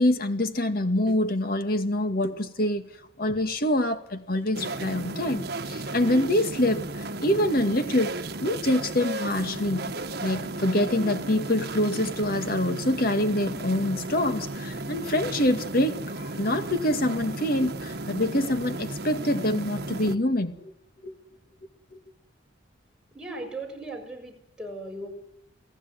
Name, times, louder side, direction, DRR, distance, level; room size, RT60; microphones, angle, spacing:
voice 1, 0.0-2.8 3.2-6.8 7.2-8.1 8.4-9.9 10.2-20.7 21.0-21.1, left 1 dB, 50° left, 2.2 m, -25 dB
sound 1, 4.5-20.2, right 2 dB, 55° right, 1.4 m, -34 dB
voice 2, 23.1-25.1, right 2 dB, 5° right, 6.5 m, -37 dB
28.5 x 16.5 x 9.4 m
head